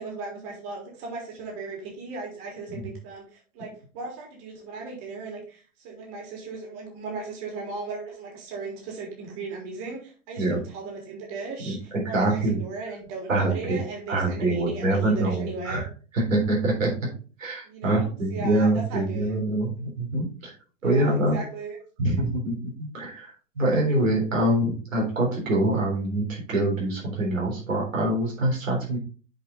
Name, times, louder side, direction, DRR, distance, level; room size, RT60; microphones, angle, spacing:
voice 1, 0.0-15.8 17.6-19.4 20.8-21.8, right 3 dB, 50° right, -1 dB, 3.6 m, -37 dB
voice 2, 12.1-12.6 13.3-13.8 14.1-15.9 16.1-16.9 17.4-20.5 20.8-21.4 22.0-29.0, right 1 dB, 85° right, -3 dB, 3.8 m, -25 dB
8.0 x 5.0 x 3.8 m, 0.38 s
hypercardioid pair, 100°, 38 cm